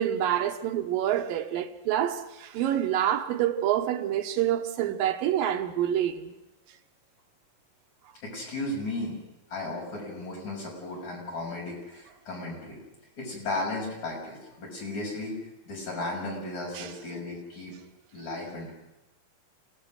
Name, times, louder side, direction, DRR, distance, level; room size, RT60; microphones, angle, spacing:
voice 1, 0.0-6.3 16.7-16.9, right 11 dB, 80° right, 2.7 m, -27 dB
voice 2, 8.2-9.2 9.5-12.8 13.2-15.4 15.7-17.7 18.1-18.7, left 2 dB, 55° left, 8.0 m, -35 dB
28.0 x 17.5 x 6.4 m
omnidirectional pair, 4.0 m